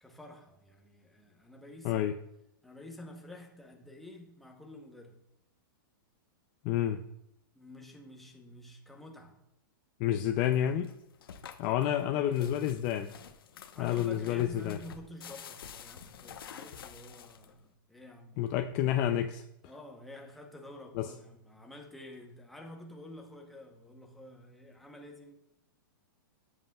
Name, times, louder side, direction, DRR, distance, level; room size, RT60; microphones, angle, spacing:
voice 1, 0.0-2.1 2.6-5.2 7.5-9.4 11.8-12.6 13.5-18.5 19.6-25.4, left 1 dB, ahead, 0.8 m, -50 dB
voice 2, 6.6-7.0 10.0-10.9 11.6-13.1 13.8-14.8 18.4-19.4 21.0-21.1, left 11 dB, 30° left, 0.4 m, -29 dB
sound 1, 10.4-17.7, left 8 dB, 85° left, 0.9 m, -49 dB
12.5 x 7.7 x 2.3 m
hypercardioid pair, 160°, 12 cm